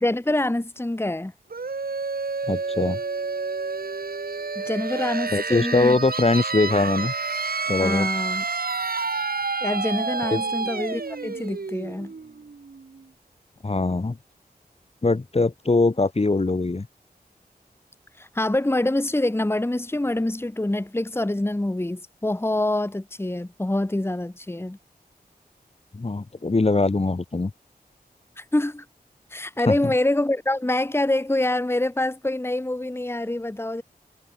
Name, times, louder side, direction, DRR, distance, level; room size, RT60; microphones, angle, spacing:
voice 1, 0.0-1.3 4.6-6.0 7.8-8.4 9.6-12.1 18.2-24.8 28.4-28.8 29.3-33.8, left 1 dB, 15° left, 1.5 m, -25 dB
sound 1, 1.5-13.0, right 4 dB, 70° right, 4.6 m, -29 dB
voice 2, 2.5-3.0 5.3-7.1 7.7-8.1 10.3-10.4 13.6-14.2 15.0-16.9 25.9-27.5 29.7-29.8, left 3 dB, 40° left, 1.8 m, -22 dB
wide cardioid pair, 95°, 16 cm